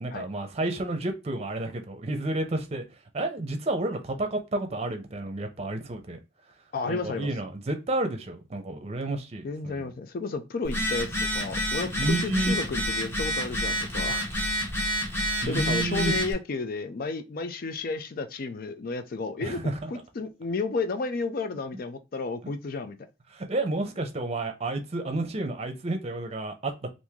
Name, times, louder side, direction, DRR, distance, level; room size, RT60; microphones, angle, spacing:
voice 1, 0.0-2.8 3.1-6.2 6.9-9.9 12.0-12.5 15.4-16.1 19.4-19.9 23.3-26.9, right 2 dB, 35° right, 0.6 m, -30 dB
voice 2, 6.7-7.3 9.4-14.3 15.5-19.6 19.9-23.0, left 3 dB, 55° left, 0.4 m, -32 dB
Telephone, 10.6-16.3, equal, 15° left, 0.8 m, -29 dB
2.9 x 2.6 x 3.6 m
head